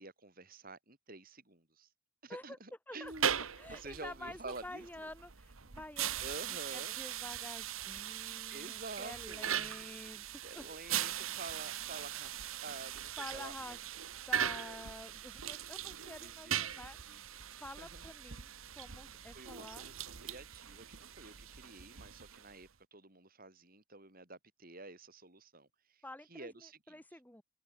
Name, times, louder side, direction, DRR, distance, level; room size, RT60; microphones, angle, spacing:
voice 1, 0.0-1.9 2.2-3.3 3.7-5.1 6.2-7.0 8.2-9.7 10.4-13.8 16.2-17.2 17.8-18.0 19.3-26.0 26.3-27.0, right 3 dB, 45° right, 5.3 m, -50 dB
sound 1, 3.0-22.7, right 9 dB, 75° right, 1.4 m, -40 dB
voice 2, 3.6-6.2 6.5-10.8 13.2-13.8 14.3-17.2 17.5-19.8 26.0-27.4, left 1 dB, 10° left, 2.3 m, -49 dB
head